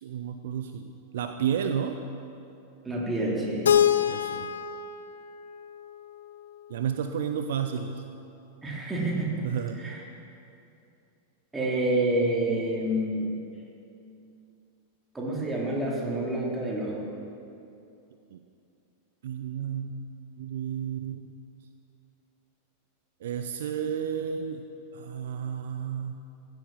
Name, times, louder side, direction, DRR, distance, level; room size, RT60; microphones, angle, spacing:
voice 1, 0.0-2.0 4.1-4.5 6.7-8.0 9.4-9.8 18.3-18.4 19.2-20.0 20.4-21.3 23.2-24.6 24.9-26.2, right 8 dB, 60° right, 7 dB, 0.6 m, -32 dB
voice 2, 2.8-3.7 8.6-9.4 9.8-10.0 11.5-13.3 15.1-17.0, right 1 dB, 10° right, -4 dB, 3.5 m, -28 dB
Keyboard (musical), 3.6-6.6, left 9 dB, 65° left, 0.5 m, -26 dB
15.0 x 9.2 x 7.4 m, 2.7 s
figure-of-eight pair, 90°, 0 cm